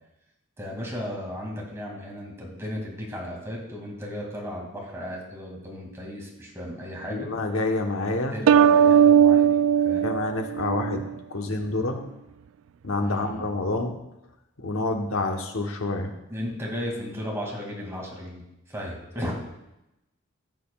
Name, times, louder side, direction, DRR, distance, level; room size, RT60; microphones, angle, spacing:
voice 1, 0.6-7.3 8.3-9.6 9.8-10.1 13.0-13.5 16.3-18.4 18.7-19.3, equal, 15° right, -2 dB, 2.2 m, -35 dB
voice 2, 7.1-8.4 10.0-11.0 11.3-12.0 12.8-13.9 14.6-16.1, left 2 dB, 80° left, 4 dB, 1.1 m, -27 dB
sound 1, 8.5-11.1, right 8 dB, 75° right, 0.3 m, -18 dB
14.5 x 7.6 x 2.3 m, 0.91 s
head